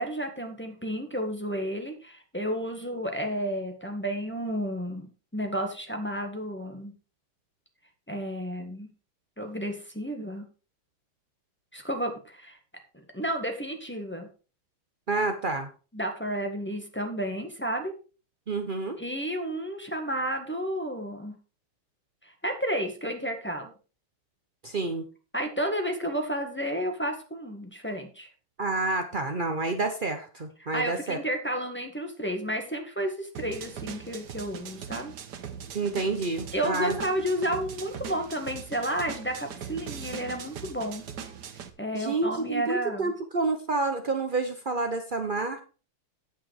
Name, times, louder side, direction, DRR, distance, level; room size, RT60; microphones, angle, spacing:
voice 1, 0.0-5.1 5.3-6.9 8.1-8.9 9.4-10.4 11.7-12.6 12.9-14.3 15.9-17.9 19.0-21.3 22.2-23.7 25.3-28.3 30.7-35.1 36.5-41.0 41.8-43.1, equal, 5° left, 3 dB, 1.3 m, -31 dB
voice 2, 15.1-15.7 18.5-19.0 24.6-25.0 28.6-31.2 35.7-37.0 41.9-45.6, right 3 dB, 75° right, 6 dB, 0.4 m, -29 dB
sound 1, 33.4-41.7, right 7 dB, 55° right, 1.5 m, -40 dB
9.3 x 8.4 x 4.8 m, 0.35 s
omnidirectional pair, 2.4 m